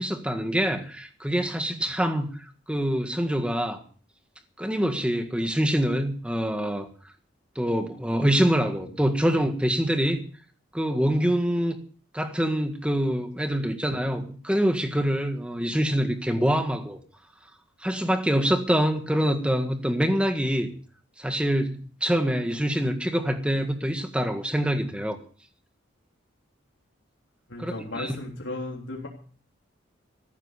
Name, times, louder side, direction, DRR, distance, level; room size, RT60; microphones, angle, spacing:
voice 1, 0.0-3.8 4.6-6.9 7.5-10.2 10.7-11.8 12.1-17.0 17.8-20.7 21.2-25.2 27.6-28.2, equal, 5° right, 1.7 m, -25 dB
voice 2, 27.5-29.1, left 2 dB, 80° left, 3.4 m, -35 dB
14.5 x 11.0 x 6.6 m
head